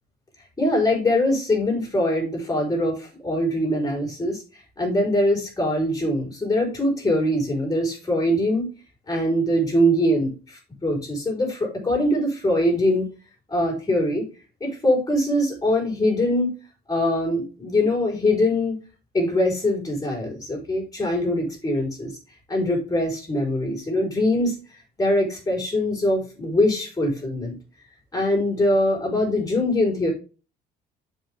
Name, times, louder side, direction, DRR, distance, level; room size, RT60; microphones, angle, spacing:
voice 1, 0.6-4.4 4.8-8.7 9.1-13.1 13.5-14.3 14.6-16.5 16.9-18.8 19.1-22.1 22.5-24.5 25.0-27.5 28.1-30.1, left 1 dB, 20° left, 0 dB, 4.4 m, -22 dB
7.1 x 5.6 x 3.6 m, 0.33 s
cardioid pair, 110°, 17 cm